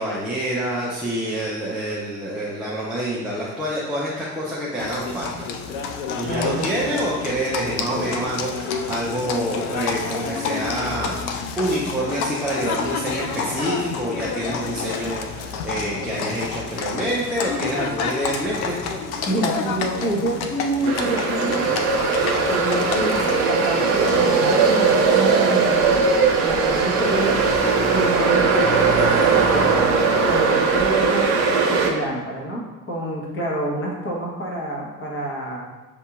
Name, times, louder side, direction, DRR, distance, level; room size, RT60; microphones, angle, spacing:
voice 1, 0.0-5.3 6.1-11.2 11.6-18.8, right 1 dB, ahead, -6 dB, 0.7 m, -27 dB
Livestock farm animals working animals, 4.8-24.7, left 5 dB, 70° left, 0.6 m, -29 dB
voice 2, 6.2-7.0 19.3-21.8 22.5-26.0 26.3-27.4 27.9-31.3 31.7-35.6, right 1 dB, 30° left, -2 dB, 1.2 m, -28 dB
sound 1, 20.8-31.9, right 4 dB, 65° right, 0.8 m, -19 dB
6.7 x 2.8 x 2.4 m, 1.2 s
figure-of-eight pair, 60°, 44 cm